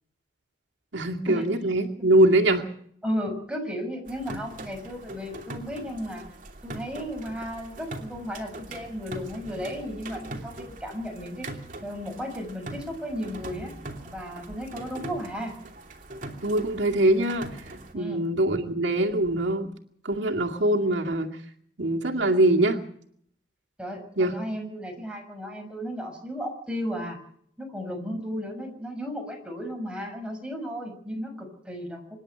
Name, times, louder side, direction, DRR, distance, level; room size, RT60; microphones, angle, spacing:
voice 1, 0.9-2.7 16.4-17.5 17.9-19.7 20.0-21.3 21.8-22.8 24.2-24.4, right 1 dB, 90° right, 2 dB, 2.2 m, -23 dB
voice 2, 3.0-6.2 6.6-13.7 14.0-15.6 17.9-18.2 23.8-27.2 27.6-32.2, equal, 5° right, 2 dB, 6.2 m, -34 dB
sound 1, 4.1-17.9, right 2 dB, 45° right, 2.9 m, -42 dB
26.0 x 11.0 x 9.2 m, 0.65 s
head